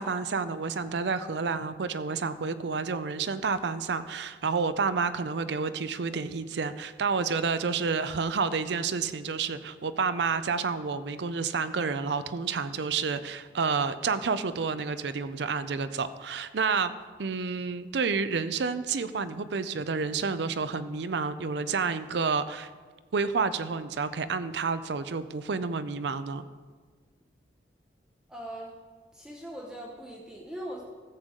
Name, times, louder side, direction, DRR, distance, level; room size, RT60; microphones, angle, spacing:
voice 1, 0.0-16.9 17.2-22.7 23.1-26.5, right 5 dB, 70° right, 12 dB, 0.5 m, -29 dB
voice 2, 28.3-28.8 29.1-30.8, right 1 dB, 5° right, -2 dB, 0.8 m, -40 dB
13.5 x 8.0 x 3.7 m, 1.5 s
head